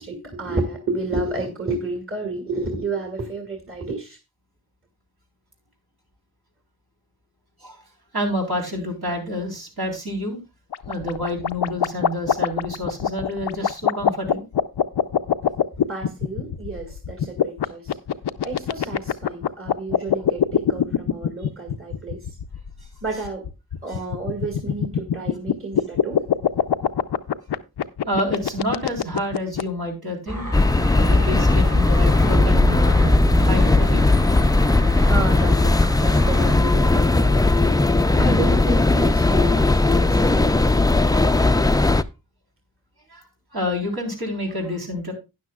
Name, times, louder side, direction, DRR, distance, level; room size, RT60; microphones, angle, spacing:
voice 1, 0.0-4.2 15.9-18.0 18.4-22.2 23.0-23.5 23.8-26.3 35.0-37.6 38.1-40.9, right 2 dB, 35° right, 2.0 m, -31 dB
voice 2, 8.1-10.4 10.9-14.5 28.1-30.5 31.0-34.1 37.4-37.5 41.1-41.6 43.1-43.2 43.5-45.1, left 1 dB, 70° right, 3.7 m, -28 dB
sound 1, 10.7-29.6, left 9 dB, 85° left, 0.6 m, -23 dB
sound 2, 30.3-36.6, right 1 dB, 50° right, 4.1 m, -28 dB
sound 3, 30.5-42.0, left 2 dB, 10° left, 0.4 m, -17 dB
12.5 x 9.7 x 2.3 m
wide cardioid pair, 45°, 39 cm